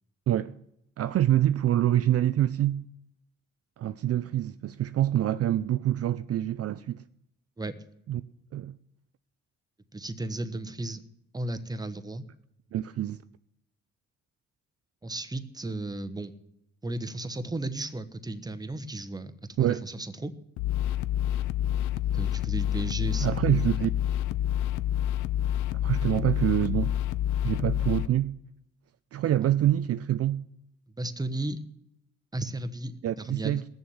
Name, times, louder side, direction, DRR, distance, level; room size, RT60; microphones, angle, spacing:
voice 1, 1.0-2.8 3.8-7.0 8.1-8.2 8.5-8.8 12.7-13.2 19.6-19.8 23.2-23.9 25.8-26.9 27.4-28.4 29.1-30.4 33.0-33.6, right 12 dB, 50° right, 0.5 m, -26 dB
voice 2, 9.9-11.0 11.3-12.2 15.0-16.3 16.8-19.3 19.6-20.3 22.1-23.7 29.4-29.5 31.0-31.6 32.3-33.6, right 2 dB, 15° right, 1.1 m, -34 dB
sound 1, 20.6-28.1, left 11 dB, 85° left, 0.6 m, -28 dB
18.5 x 7.1 x 7.1 m
cardioid pair, 90°, 30 cm